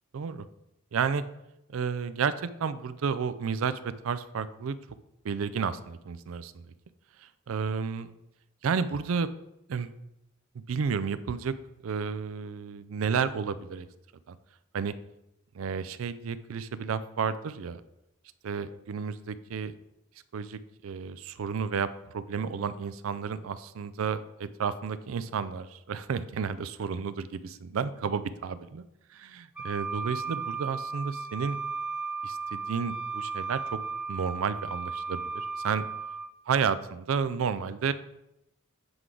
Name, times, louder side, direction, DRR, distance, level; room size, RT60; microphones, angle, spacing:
voice 1, 0.1-0.5 0.9-1.2 1.7-2.3 2.6-4.8 5.2-6.7 7.2-8.1 8.6-9.3 9.7-9.9 10.5-11.6 11.8-13.9 14.3-14.4 14.7-14.9 15.5-17.8 18.4-19.7 20.3-28.8 29.1-31.6 32.2-33.8 34.1-35.8 36.5-37.9, right 6 dB, 80° right, 14 dB, 0.4 m, -31 dB
Wind instrument woodwind instrument, 29.6-36.3, right 4 dB, 5° right, 0.4 m, -35 dB
7.8 x 4.7 x 3.8 m, 0.88 s
head